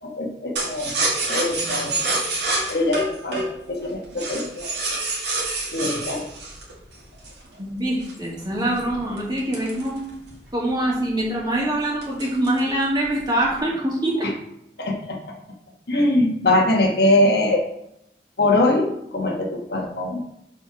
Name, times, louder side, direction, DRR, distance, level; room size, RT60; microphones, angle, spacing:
voice 1, 0.0-2.2 2.7-4.7 5.7-6.3 14.2-14.3 14.8-15.3 15.9-17.6 18.4-20.2, left 1 dB, 60° left, 1 dB, 1.2 m, -22 dB
sound 1, 0.6-7.5 8.0-10.5 10.8-10.9 11.2-11.6 12.0-12.7 13.0-13.6, right 2 dB, 80° right, 2.2 m, -27 dB
voice 2, 7.6-10.0 10.5-14.3 15.9-16.0, right 1 dB, 25° right, -4 dB, 2.1 m, -24 dB
5.2 x 4.7 x 5.7 m, 0.79 s
head